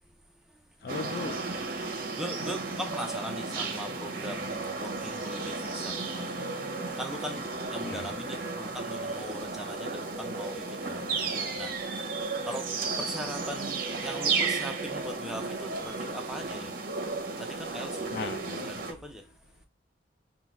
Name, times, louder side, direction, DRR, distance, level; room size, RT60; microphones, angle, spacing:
voice 1, 0.8-1.6 7.8-8.1 18.1-19.0, left 4 dB, 55° left, 0.4 m, -38 dB
sound 1, 0.9-18.9, right 3 dB, 50° right, 0.8 m, -34 dB
voice 2, 1.5-12.1 12.4-16.8 17.4-18.3 18.6-19.3, equal, 5° right, 0.5 m, -41 dB
5.5 x 2.3 x 3.1 m
head